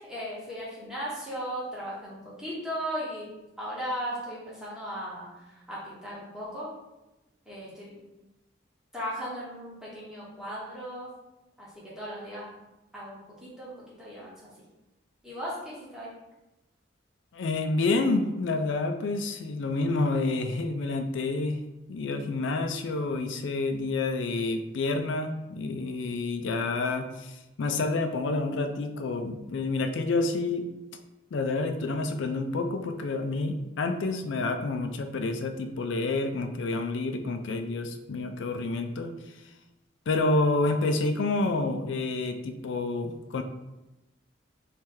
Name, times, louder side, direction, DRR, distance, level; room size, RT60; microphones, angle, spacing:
voice 1, 0.0-3.3 3.6-6.7 7.5-8.0 8.9-11.1 11.6-12.5 12.9-14.3 15.2-16.1, equal, 5° right, -8 dB, 1.1 m, -37 dB
voice 2, 17.3-21.6 21.9-30.7 31.3-39.1 40.1-43.4, left 3 dB, 70° left, 6 dB, 0.4 m, -28 dB
3.1 x 2.9 x 3.6 m, 1.0 s
head